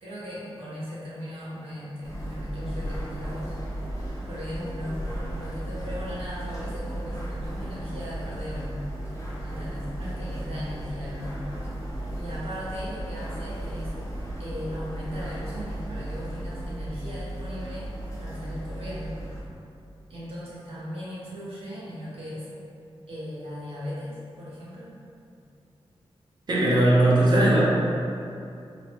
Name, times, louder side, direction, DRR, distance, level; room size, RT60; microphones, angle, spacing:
voice 1, 0.0-3.5 4.2-9.1 9.4-11.7 12.1-13.9 14.4-17.9 18.2-19.2 20.1-22.5 23.1-24.9, equal, 70° right, -9 dB, 0.8 m, -37 dB
sound 1, 2.0-19.4, right 1 dB, 30° left, 0.6 m, -35 dB
voice 2, 26.5-27.6, right 1 dB, 45° right, -6 dB, 0.6 m, -19 dB
3.1 x 2.0 x 2.9 m, 2.6 s
wide cardioid pair, 160°, 10 cm